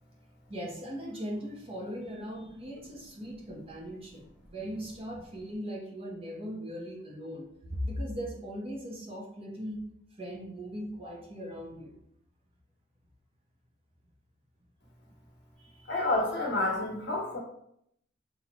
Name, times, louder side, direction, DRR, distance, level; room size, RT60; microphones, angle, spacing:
voice 1, 0.5-9.8 10.2-12.0 15.6-16.0, equal, 30° right, -1 dB, 0.9 m, -39 dB
voice 2, 15.9-17.4, left 2 dB, 65° left, -2 dB, 1.4 m, -29 dB
6.0 x 2.8 x 2.9 m, 0.74 s
head